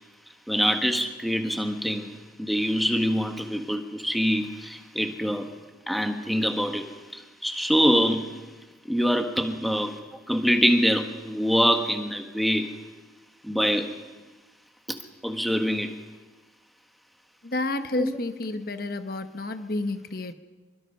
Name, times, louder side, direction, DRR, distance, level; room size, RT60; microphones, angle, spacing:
voice 1, 0.5-5.5 5.9-8.3 8.9-10.0 10.3-12.7 13.4-13.9 14.9-15.0 15.2-16.0 18.0-18.1, equal, ahead, 5 dB, 1.5 m, -25 dB
voice 2, 17.4-20.3, left 2 dB, 50° left, 9 dB, 1.0 m, -30 dB
27.0 x 23.5 x 5.6 m, 1.3 s
head